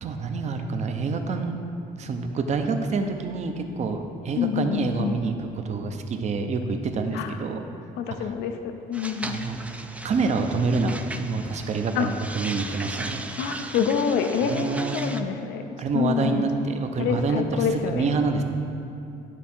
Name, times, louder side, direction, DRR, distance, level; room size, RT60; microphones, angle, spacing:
voice 1, 0.0-1.6 2.0-7.6 8.2-8.3 9.2-9.6 10.0-13.2 14.5-14.9 15.8-18.4, right 4 dB, 40° right, 6 dB, 0.6 m, -27 dB
voice 2, 4.3-5.2 7.1-7.4 8.0-8.6 8.9-9.4 11.9-12.1 13.4-15.6 15.9-16.4 17.0-18.4, left 7 dB, 80° left, 7 dB, 0.5 m, -27 dB
sound 1, 8.9-15.2, right 2 dB, 10° right, 0.3 m, -37 dB
10.5 x 3.6 x 4.3 m, 2.7 s
cardioid pair, 110°, 17 cm